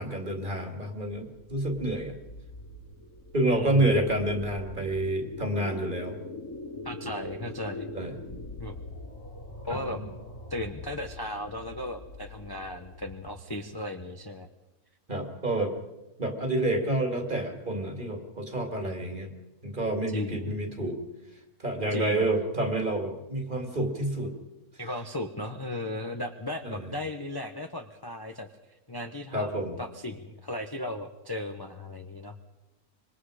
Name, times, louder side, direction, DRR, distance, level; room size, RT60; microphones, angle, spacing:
voice 1, 0.0-2.1 3.3-6.2 7.0-7.1 7.9-8.1 9.7-10.1 15.1-15.8 16.2-19.3 19.6-21.0 21.6-24.3 26.6-26.9 29.3-29.8, right 1 dB, 35° right, 3 dB, 2.7 m, -29 dB
sound 1, 1.3-14.2, left 1 dB, 70° left, 5.8 m, -43 dB
voice 2, 3.4-3.9 6.8-7.9 8.6-8.7 9.7-10.0 10.5-14.5 18.8-19.0 20.1-20.5 21.9-22.3 24.8-28.5 28.9-32.4, left 1 dB, 20° left, 5 dB, 0.9 m, -36 dB
25.5 x 22.5 x 5.0 m, 1.0 s
omnidirectional pair, 1.6 m